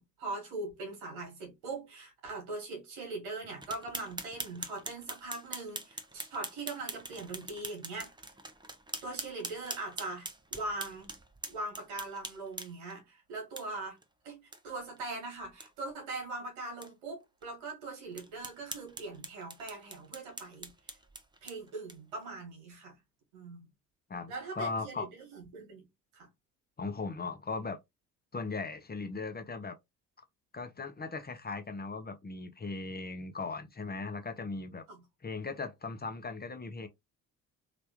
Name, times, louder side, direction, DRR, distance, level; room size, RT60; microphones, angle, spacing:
voice 1, 0.0-8.1 9.0-11.1 11.5-14.0 14.2-20.7 21.4-22.9 23.3-23.7 24.3-25.9 26.1-26.3 34.9-35.0, right 2 dB, 75° right, 1.6 m, -41 dB
sound 1, 3.6-12.9 13.6-13.7 14.0-14.1 14.5-14.6 15.0-15.1 15.4-15.7 16.2-16.3 16.8-16.9 17.4-17.5 18.1-22.2, right 2 dB, 10° right, 0.7 m, -43 dB
voice 2, 24.1-25.1 26.8-27.8 28.3-29.7 30.5-34.8 35.2-36.9, left 4 dB, 25° left, 0.9 m, -38 dB
3.3 x 3.0 x 2.9 m
figure-of-eight pair, 45°, 41 cm